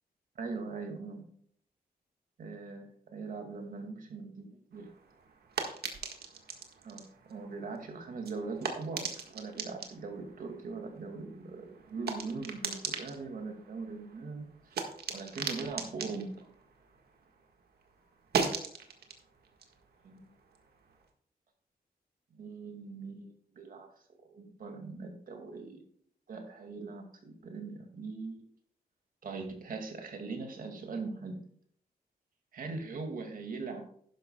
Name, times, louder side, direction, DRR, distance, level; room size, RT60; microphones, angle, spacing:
voice 1, 0.4-1.3 2.4-4.9 6.8-14.5 15.1-16.5 20.0-20.3 22.3-23.9 24.3-25.9 26.3-28.5 29.2-31.5 32.5-33.8, right 4 dB, 60° right, 4 dB, 2.2 m, -41 dB
sound 1, 4.7-17.5 17.8-21.0, right 5 dB, 80° right, 1.7 m, -40 dB
12.0 x 11.0 x 2.3 m, 0.62 s
wide cardioid pair, 175°, 16 cm